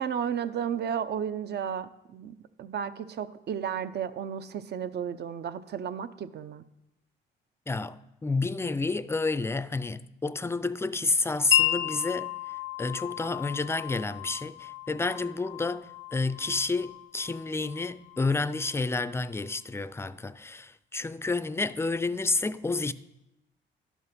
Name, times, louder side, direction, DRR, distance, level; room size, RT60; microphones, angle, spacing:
voice 1, 0.0-6.6, right 8 dB, 55° right, 0.7 m, -33 dB
voice 2, 7.7-12.3 12.8-22.9, left 3 dB, 15° left, 0.4 m, -30 dB
Wind chime, 11.5-19.2, left 12 dB, 85° left, 0.7 m, -33 dB
12.0 x 5.5 x 6.1 m
cardioid pair, 90°, 20 cm